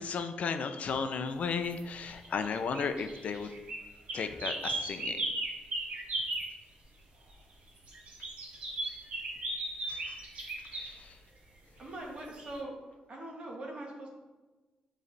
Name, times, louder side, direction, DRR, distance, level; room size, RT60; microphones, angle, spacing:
voice 1, 0.0-3.5 4.1-5.2 9.9-10.2 10.7-11.2, left 5 dB, 55° left, 8 dB, 0.5 m, -35 dB
sound 1, 1.5-1.8 2.1-6.5 7.8-10.9 12.4-12.6, right 2 dB, 55° right, 1.6 m, -36 dB
voice 2, 11.8-12.7 13.1-14.1, right 1 dB, 40° right, -1 dB, 1.3 m, -42 dB
7.9 x 3.2 x 4.0 m, 1.2 s
cardioid pair, 120°, 3 cm